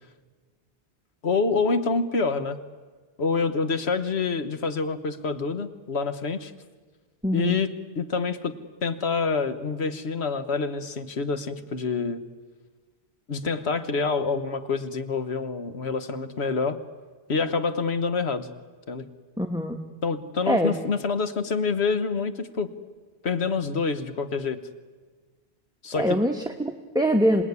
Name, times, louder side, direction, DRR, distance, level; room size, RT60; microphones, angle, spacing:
voice 1, 1.2-2.6 3.2-6.5 7.3-7.7 7.9-8.5 8.8-12.2 13.3-16.8 17.3-18.5 18.9-19.1 20.0-22.7 23.2-24.6 25.8-26.1, left 4 dB, 85° left, 11 dB, 1.5 m, -27 dB
voice 2, 7.2-7.6 19.4-19.8 20.5-20.7 26.0-27.4, equal, 5° right, 3 dB, 1.1 m, -24 dB
27.5 x 18.0 x 9.7 m, 1.4 s
omnidirectional pair, 1.1 m